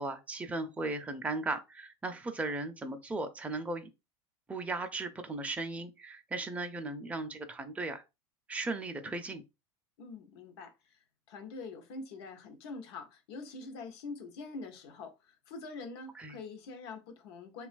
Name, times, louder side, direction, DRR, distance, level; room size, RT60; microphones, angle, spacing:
voice 1, 0.0-3.9 4.5-8.0 8.5-9.4 16.2-16.4, right 2 dB, 10° right, 0.5 m, -37 dB
voice 2, 10.0-11.0 11.3-17.7, left 3 dB, 70° left, 0.7 m, -45 dB
3.0 x 2.3 x 2.5 m
hypercardioid pair, 85°, 14 cm